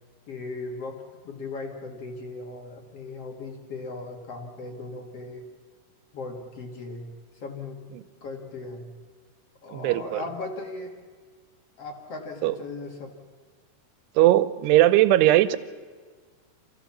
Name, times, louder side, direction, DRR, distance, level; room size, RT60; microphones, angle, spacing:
voice 1, 0.3-5.5 6.1-7.1 7.3-7.8 8.2-8.9 9.6-10.9 11.8-13.1, left 3 dB, 45° left, 2 dB, 2.3 m, -37 dB
voice 2, 9.7-10.2 12.4-12.5 14.2-15.6, right 14 dB, 85° right, 14 dB, 2.8 m, -19 dB
26.5 x 15.5 x 7.3 m, 1.5 s
omnidirectional pair, 4.7 m